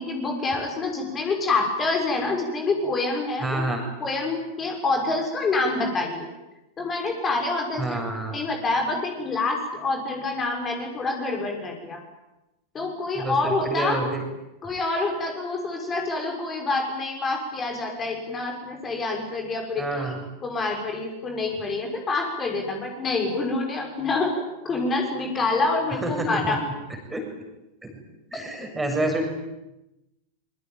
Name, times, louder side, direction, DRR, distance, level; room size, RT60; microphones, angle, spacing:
voice 1, 0.0-3.6 4.0-6.3 6.8-8.0 8.3-12.0 12.7-14.1 14.6-20.1 20.4-24.3 24.6-26.6 28.3-28.4, left 3 dB, 20° left, 2 dB, 6.2 m, -27 dB
voice 2, 3.4-3.8 7.8-8.4 13.2-14.2 19.8-20.2 26.0-26.6 27.1-27.2 27.8-27.9 28.3-29.3, right 2 dB, 5° right, 3 dB, 6.9 m, -28 dB
25.5 x 24.5 x 9.3 m, 0.95 s
figure-of-eight pair, 90°, 0 cm